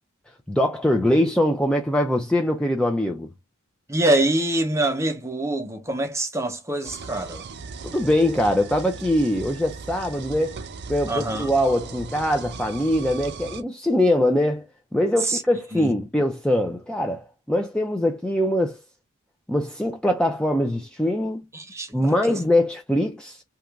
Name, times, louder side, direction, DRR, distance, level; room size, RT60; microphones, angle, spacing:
voice 1, 0.5-3.3 7.8-10.6 10.9-14.7 14.9-18.8 19.5-21.4 21.9-23.4, left 1 dB, 5° left, 0.4 m, -22 dB
voice 2, 3.9-7.5 11.1-11.5 15.2-15.4 15.7-15.9 21.5-22.4, right 1 dB, 15° right, 0.7 m, -25 dB
sound 1, 6.8-13.6, right 5 dB, 50° right, 0.5 m, -38 dB
2.8 x 2.5 x 3.3 m
head